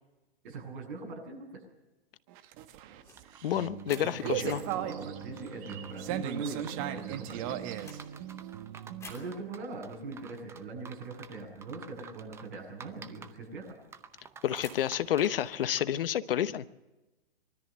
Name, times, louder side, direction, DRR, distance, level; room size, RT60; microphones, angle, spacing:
voice 1, 0.4-1.6 4.0-7.6 9.1-13.8, right 3 dB, 55° right, 1 dB, 7.8 m, -41 dB
sound 1, 2.3-9.1, right 12 dB, 35° right, 1.3 m, -37 dB
sound 2, 2.9-3.3 3.9-8.6 9.0-9.6 11.6-11.9 12.2-12.3 12.6-13.8 14.4-15.6, left 3 dB, 10° left, 3.0 m, -52 dB
sound 3, 3.1-16.0, right 6 dB, 10° right, 0.7 m, -52 dB
voice 2, 3.4-4.6 14.4-16.6, left 10 dB, 65° left, 15 dB, 1.0 m, -29 dB
23.0 x 13.5 x 8.9 m, 1.1 s
hypercardioid pair, 145°, 31 cm